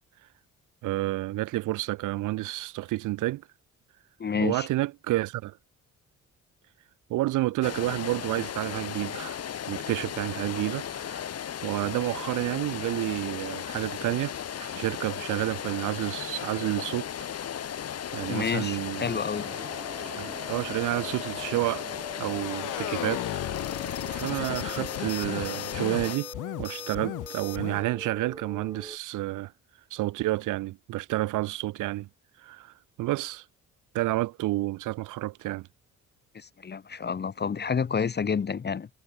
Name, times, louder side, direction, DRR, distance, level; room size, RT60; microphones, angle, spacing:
voice 1, 0.8-3.5 4.4-5.6 7.1-9.4 9.7-11.3 11.6-14.3 14.6-17.1 18.1-19.2 20.2-21.8 22.2-23.2 24.1-26.3 26.6-29.5 29.9-32.1 32.4-33.4 33.9-35.7, right 18 dB, 90° right, 1.0 m, -30 dB
voice 2, 4.2-4.7 18.3-19.5 36.3-38.9, left 6 dB, 35° left, 1.1 m, -29 dB
sound 1, 7.6-26.2, left 9 dB, 55° left, 2.1 m, -36 dB
sound 2, 19.0-29.0, right 2 dB, 10° right, 4.8 m, -44 dB
sound 3, 22.3-27.8, left 15 dB, 80° left, 1.7 m, -36 dB
cardioid pair, 90°, 30 cm